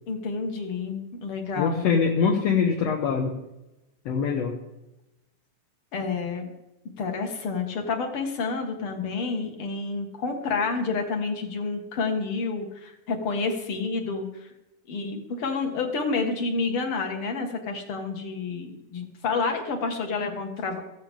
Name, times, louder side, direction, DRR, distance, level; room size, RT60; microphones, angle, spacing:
voice 1, 0.1-1.9 5.9-6.5 7.0-14.5 14.9-20.8, left 4 dB, 45° left, 4 dB, 2.3 m, -29 dB
voice 2, 1.6-3.4 4.1-4.6, left 6 dB, 65° left, 1 dB, 1.8 m, -23 dB
15.5 x 15.0 x 3.7 m, 0.96 s
omnidirectional pair, 4.0 m